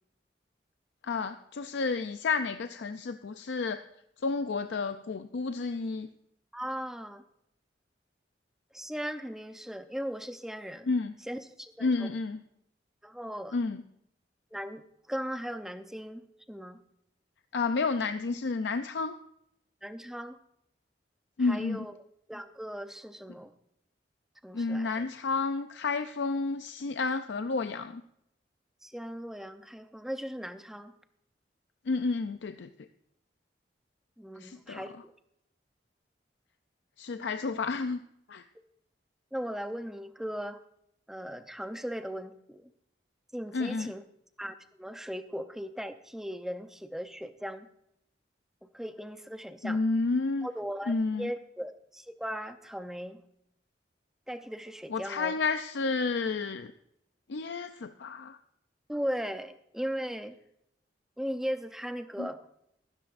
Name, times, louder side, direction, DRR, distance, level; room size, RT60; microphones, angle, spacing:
voice 1, 1.0-3.8 4.2-6.1 10.9-11.1 11.8-12.4 13.5-13.8 17.5-19.1 21.4-21.8 24.5-28.0 31.9-32.7 34.4-34.8 37.0-38.0 38.3-38.4 43.5-43.9 49.6-50.5 50.9-51.3 54.9-56.7 57.3-58.4 62.2-62.3, left 4 dB, 80° left, 9 dB, 0.5 m, -30 dB
voice 2, 6.5-7.2 8.7-10.9 11.2-12.1 13.0-13.6 14.5-14.8 15.1-16.2 16.5-16.8 19.8-20.4 21.4-21.9 22.3-23.5 24.4-25.1 28.8-30.9 34.2-35.0 37.5-37.6 39.3-40.6 41.1-42.7 43.3-44.0 44.4-47.7 48.6-49.8 50.4-53.2 54.3-55.4 58.9-60.3 61.2-62.4, equal, 5° right, 8 dB, 0.6 m, -38 dB
14.0 x 13.0 x 2.5 m, 0.76 s
head